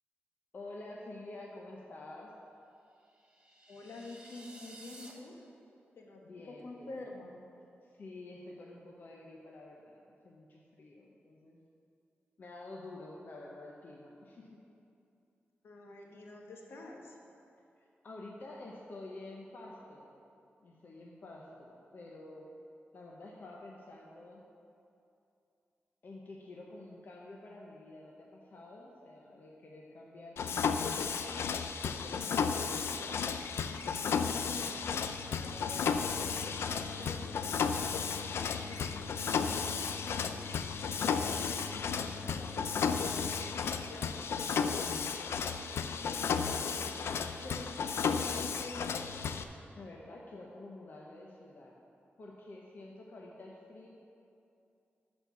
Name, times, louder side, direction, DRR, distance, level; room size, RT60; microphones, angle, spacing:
voice 1, 0.5-2.3 6.2-6.9 7.8-11.6 12.4-14.6 18.0-20.1 20.6-22.5 22.9-24.4 26.0-31.2 31.8-33.2 49.7-51.7 52.2-53.9, left 2 dB, 50° left, -2 dB, 0.9 m, -49 dB
sound 1, 3.1-5.1, right 2 dB, 20° right, 1.0 m, -53 dB
voice 2, 3.7-5.4 5.9-7.4 15.6-17.2 34.5-39.3 40.2-40.6 41.1-41.3 41.7-43.4 43.8-44.8 45.7-49.1, left 2 dB, 75° left, 0 dB, 1.1 m, -49 dB
Mechanisms, 30.4-49.4, left 6 dB, 90° left, 0.4 m, -33 dB
13.0 x 4.5 x 5.8 m, 2.6 s
wide cardioid pair, 155°, 4 cm